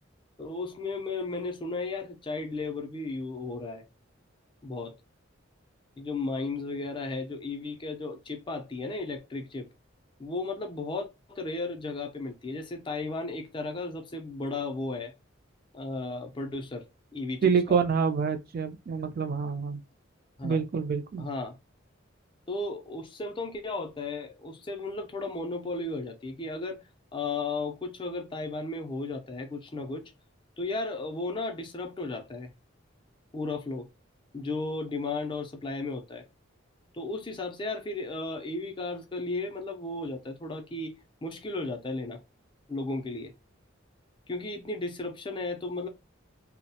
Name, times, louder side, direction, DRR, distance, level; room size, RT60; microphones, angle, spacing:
voice 1, 0.4-3.8 4.6-4.9 6.0-9.7 10.2-15.1 15.7-16.9 17.1-17.8 20.4-20.6 21.2-21.6 22.5-26.8 27.1-30.1 30.6-32.5 33.3-33.9 34.3-36.3 36.9-40.9 41.2-42.2 42.7-43.3 44.3-45.9, left 3 dB, 25° left, 0.4 m, -34 dB
voice 2, 17.4-19.8 20.4-21.3, right 6 dB, 50° right, 0.3 m, -27 dB
2.3 x 2.0 x 2.7 m
head